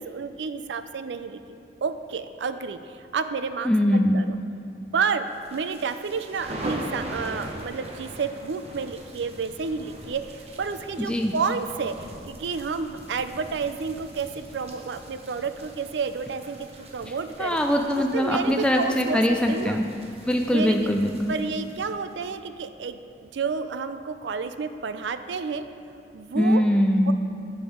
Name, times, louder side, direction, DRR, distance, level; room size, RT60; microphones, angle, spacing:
voice 1, 0.0-1.4 1.8-4.4 4.9-17.6 18.0-19.8 20.5-20.9 21.3-25.6 26.1-26.6 27.1-27.2, right 5 dB, 85° right, 11 dB, 0.4 m, -30 dB
voice 2, 3.6-4.2 11.0-11.3 17.4-19.8 20.2-21.3 26.3-27.1, equal, 5° left, 2 dB, 0.3 m, -22 dB
sound 1, 5.3-22.3, right 1 dB, 35° right, 0.9 m, -41 dB
7.2 x 6.9 x 4.9 m, 2.4 s
head